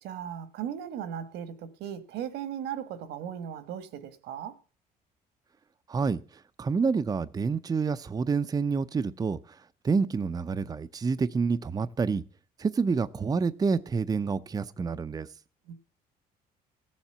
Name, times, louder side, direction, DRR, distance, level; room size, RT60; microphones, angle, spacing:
voice 1, 0.0-4.6 15.6-15.7, right 9 dB, 80° right, 1.5 m, -37 dB
voice 2, 5.9-9.6 9.8-12.2 12.6-15.3, right 5 dB, 20° right, 0.6 m, -28 dB
15.0 x 7.3 x 7.9 m
cardioid pair, 110°, 17 cm